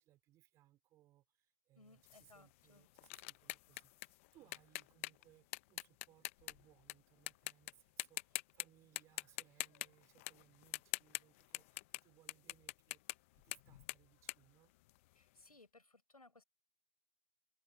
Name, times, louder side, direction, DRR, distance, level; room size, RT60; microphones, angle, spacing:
voice 1, 0.0-14.7, right 15 dB, 15° right, 4.4 m, -69 dB
voice 2, 1.7-2.9 15.2-16.4, left 2 dB, 80° left, 7.8 m, -64 dB
sound 1, 2.1-6.9 7.3-7.7 8.0-8.7 9.0-12.0 12.3-15.3, left 21 dB, 20° left, 1.2 m, -45 dB
figure-of-eight pair, 145°, 19 cm